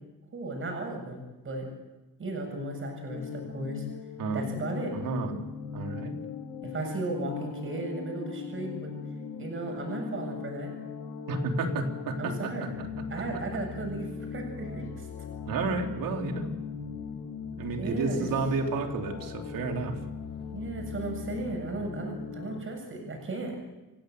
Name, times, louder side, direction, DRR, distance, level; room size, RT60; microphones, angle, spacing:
voice 1, 0.3-1.7 2.2-3.9 4.3-5.0 6.6-8.9 9.4-10.7 12.2-15.1 17.8-18.3 20.5-23.6, right 2 dB, 40° right, 2 dB, 7.3 m, -35 dB
space ambience, 3.1-22.6, left 6 dB, 80° left, 2.8 m, -39 dB
voice 2, 4.9-5.4 5.7-6.1 11.3-12.5 12.8-12.9 15.5-16.5 17.5-20.0, right 3 dB, 80° right, 3 dB, 3.6 m, -31 dB
28.5 x 16.5 x 8.0 m, 1.1 s
cardioid pair, 165°, 33 cm